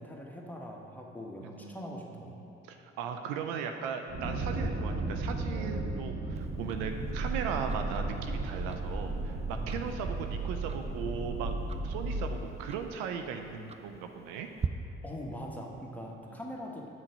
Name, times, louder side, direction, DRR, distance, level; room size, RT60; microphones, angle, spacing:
voice 1, 0.0-2.4 9.5-9.8 15.0-16.9, equal, 5° left, -1 dB, 1.4 m, -42 dB
voice 2, 1.4-2.0 2.7-11.6 11.8-14.5 16.3-16.4, right 6 dB, 75° right, 6 dB, 0.6 m, -38 dB
sound 1, 4.1-12.4, right 2 dB, 40° right, 1.2 m, -34 dB
Tick-tock, 6.3-14.7, right 6 dB, 20° right, 0.4 m, -45 dB
7.4 x 6.1 x 5.3 m, 2.9 s
hypercardioid pair, 45°, 33 cm